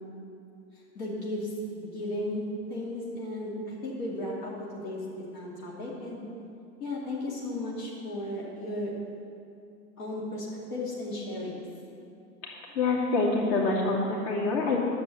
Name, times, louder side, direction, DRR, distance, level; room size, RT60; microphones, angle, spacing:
voice 1, 0.9-1.5 1.8-5.0 5.3-6.2 6.8-8.9 10.0-11.6, left 1 dB, 70° left, -6 dB, 2.6 m, -35 dB
voice 2, 12.4-14.8, left 3 dB, 55° left, -3 dB, 2.8 m, -26 dB
10.5 x 7.2 x 7.9 m, 2.6 s
hypercardioid pair, 100°, 46 cm